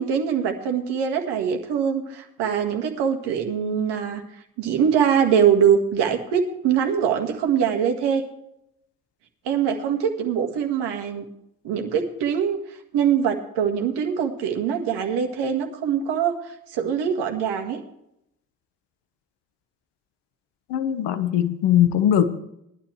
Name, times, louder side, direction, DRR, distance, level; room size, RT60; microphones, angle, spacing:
voice 1, 0.0-4.2 4.6-8.2 9.5-11.2 11.6-12.6 12.9-17.8, right 8 dB, 65° right, 1.9 m, -23 dB
voice 2, 20.7-22.2, left 10 dB, 65° left, 1.3 m, -20 dB
18.0 x 12.0 x 3.3 m
figure-of-eight pair, 45°, 44 cm